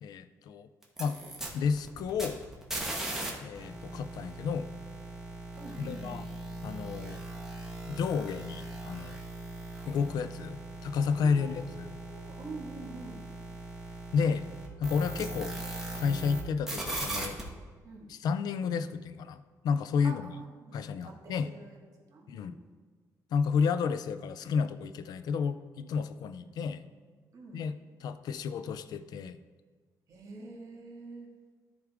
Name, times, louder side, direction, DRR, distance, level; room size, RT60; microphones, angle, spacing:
voice 1, 0.0-0.7 1.0-1.2 1.5-2.4 3.4-4.7 5.8-6.3 6.6-7.2 7.9-9.2 9.9-11.9 14.1-14.4 14.8-15.5 15.9-17.4 18.1-20.2 20.7-21.5 22.3-22.6 23.3-26.9 27.5-27.7 28.0-29.4, left 6 dB, 75° left, 12 dB, 0.4 m, -31 dB
sound 1, 0.8-3.3 3.5-16.4 16.7-17.4, right 2 dB, 5° right, 1.5 m, -39 dB
voice 2, 5.5-6.3 11.2-13.3 17.8-18.1 20.0-22.6 26.4-27.0 27.3-27.7 30.1-31.3, right 3 dB, 55° right, -1 dB, 2.1 m, -47 dB
13.0 x 4.7 x 3.6 m, 1.5 s
cardioid pair, 115°, 7 cm